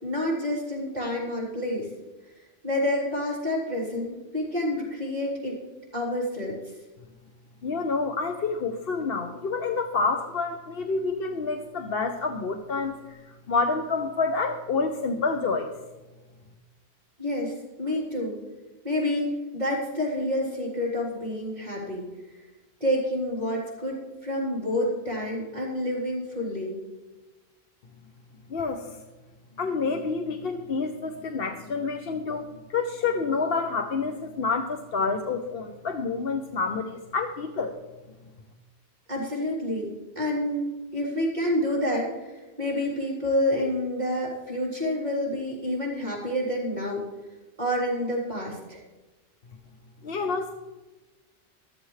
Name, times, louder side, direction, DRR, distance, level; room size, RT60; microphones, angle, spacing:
voice 1, 0.0-1.9 2.6-5.6 5.9-6.6 17.2-18.4 18.8-22.1 22.8-26.8 39.1-39.9 40.2-47.0 47.6-48.8, left 1 dB, 40° right, -6 dB, 3.7 m, -28 dB
voice 2, 7.6-15.7 28.5-29.0 29.6-37.7 50.0-50.5, left 4 dB, 65° left, 5 dB, 1.0 m, -28 dB
13.5 x 13.5 x 3.3 m, 1.2 s
omnidirectional pair, 1.1 m